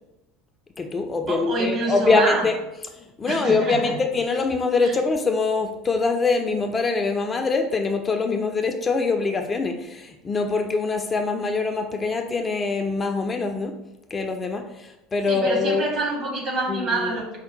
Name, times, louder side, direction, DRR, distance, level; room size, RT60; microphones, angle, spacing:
voice 1, 0.8-2.5 2.9-13.7 14.1-15.9 16.7-17.2, left 4 dB, 20° left, 5 dB, 0.3 m, -24 dB
voice 2, 1.3-2.4 3.3-4.0 4.8-4.9 15.3-17.4, right 2 dB, 40° right, 0 dB, 1.1 m, -26 dB
4.3 x 2.1 x 3.8 m, 0.96 s
figure-of-eight pair, 70°, 0 cm